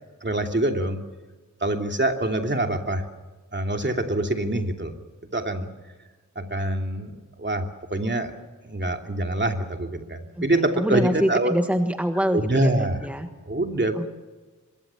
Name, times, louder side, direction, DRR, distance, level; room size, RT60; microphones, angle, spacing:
voice 1, 0.2-1.0 1.6-3.0 3.5-4.9 5.3-5.7 6.3-7.6 7.9-8.3 8.6-11.5 12.3-13.1 13.5-14.1, right 1 dB, 35° right, 4 dB, 2.8 m, -25 dB
voice 2, 10.4-13.3 13.9-14.1, equal, 5° right, 6 dB, 1.5 m, -25 dB
24.5 x 23.0 x 7.1 m, 1.2 s
wide cardioid pair, 80°, 32 cm